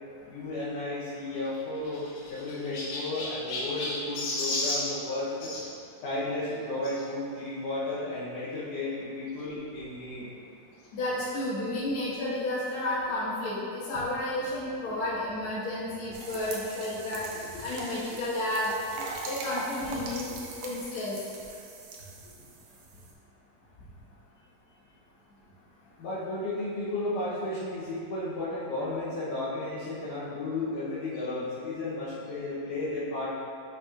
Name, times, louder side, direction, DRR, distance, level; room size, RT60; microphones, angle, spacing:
voice 1, 0.3-5.5 6.0-10.3 14.9-15.0 17.5-17.6 26.0-33.3, left 2 dB, 70° left, -9 dB, 2.3 m, -33 dB
Chirp tweet, 1.3-5.7 6.8-7.0 7.7-7.8 8.0-8.1 9.4-9.5, left 2 dB, 90° left, 2.9 m, -34 dB
voice 2, 10.9-18.7 19.3-20.3 20.6-21.2, left 1 dB, 50° left, -9 dB, 1.8 m, -31 dB
sound 1, 16.1-23.1, right 3 dB, 75° right, 1.7 m, -41 dB
7.0 x 6.5 x 2.5 m, 2.5 s
omnidirectional pair, 4.1 m